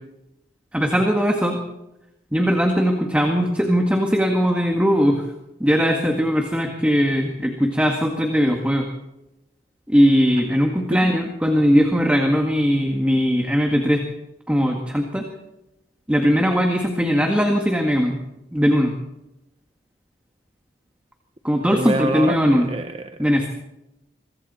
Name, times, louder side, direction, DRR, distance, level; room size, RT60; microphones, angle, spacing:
voice 1, 0.7-1.6 2.3-5.3 5.6-8.9 9.9-14.0 14.5-15.3 16.1-18.2 18.5-18.9 21.4-22.7 23.2-23.5, equal, 5° right, 2 dB, 1.9 m, -19 dB
voice 2, 21.6-23.1, right 1 dB, 30° right, 7 dB, 0.8 m, -26 dB
26.5 x 24.0 x 4.4 m, 0.91 s
head